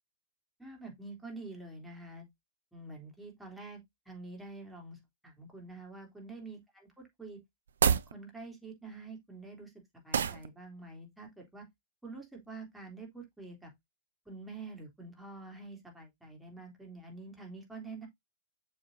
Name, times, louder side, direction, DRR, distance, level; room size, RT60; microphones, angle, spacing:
voice 1, 0.6-2.3 2.7-6.9 7.2-7.4 7.9-9.7 10.0-11.7 12.0-13.7 14.3-18.1, right 3 dB, 5° right, 3.4 m, -47 dB
sound 1, 7.7-8.1 10.1-10.5, right 7 dB, 70° right, 0.7 m, -27 dB
7.2 x 7.1 x 2.7 m
figure-of-eight pair, 105°, 0 cm